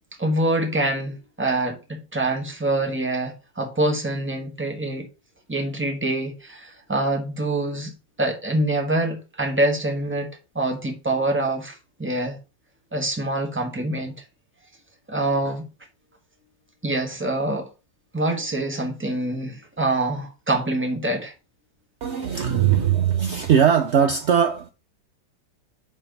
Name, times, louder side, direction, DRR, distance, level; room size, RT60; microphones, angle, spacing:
voice 1, 0.2-5.1 5.5-7.9 8.2-10.3 10.5-12.4 12.9-14.2 15.1-15.7 16.8-17.7 18.1-21.3, right 2 dB, 10° right, 1.1 m, -25 dB
voice 2, 22.0-24.7, right 8 dB, 70° right, 0.6 m, -20 dB
5.7 x 4.4 x 5.2 m
omnidirectional pair, 1.9 m